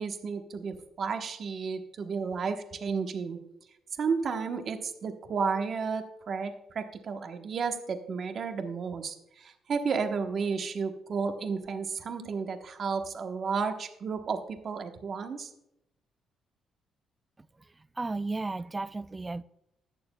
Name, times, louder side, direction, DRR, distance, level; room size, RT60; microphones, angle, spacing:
voice 1, 0.0-3.4 4.0-15.5, right 5 dB, 55° right, 1.1 m, -32 dB
voice 2, 18.0-19.4, right 3 dB, 20° right, 0.3 m, -33 dB
20.5 x 6.8 x 2.3 m
cardioid pair, 90°, 0 cm